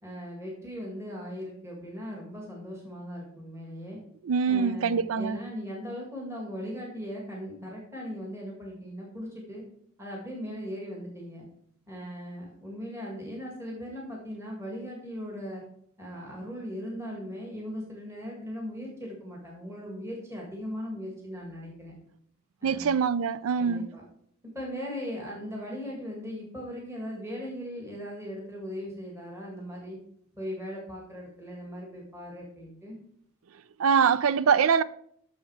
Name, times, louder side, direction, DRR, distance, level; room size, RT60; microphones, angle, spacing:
voice 1, 0.0-4.0 4.5-9.6 10.0-11.5 11.9-15.6 16.0-21.9 22.6-23.0 23.6-24.0 24.5-30.0 30.3-33.0, equal, 15° right, 1.8 m, -38 dB
voice 2, 4.2-5.4 22.6-23.9 33.8-34.8, right 6 dB, 75° right, 0.4 m, -24 dB
7.1 x 6.5 x 4.7 m
head